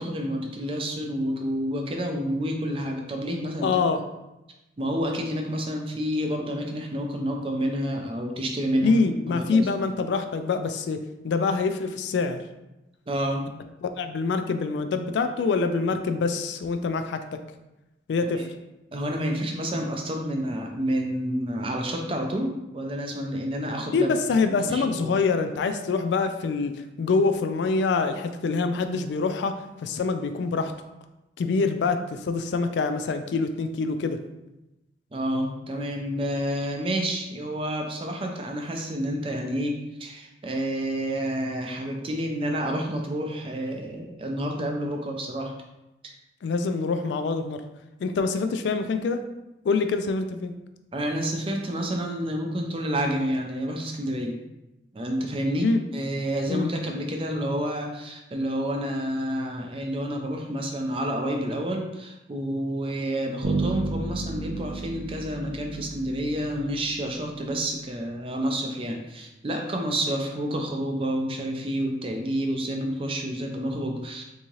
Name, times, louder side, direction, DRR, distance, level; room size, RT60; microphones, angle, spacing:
voice 1, 0.0-3.7 4.8-9.0 9.3-9.7 13.1-13.5 18.2-18.5 18.9-24.1 24.5-25.1 35.1-45.5 46.0-46.1 50.9-54.4 54.9-74.2, equal, 30° right, 2 dB, 0.4 m, -29 dB
voice 2, 3.6-4.0 8.8-12.4 13.8-17.4 18.1-18.4 23.9-26.7 27.0-30.7 31.4-34.2 46.4-47.6 48.0-49.3 49.6-50.5 55.6-55.8 56.5-56.7, left 4 dB, 75° left, 9 dB, 0.3 m, -25 dB
Bass guitar, 63.4-67.2, right 3 dB, 85° right, 0.5 m, -32 dB
3.5 x 2.8 x 3.0 m, 0.96 s
head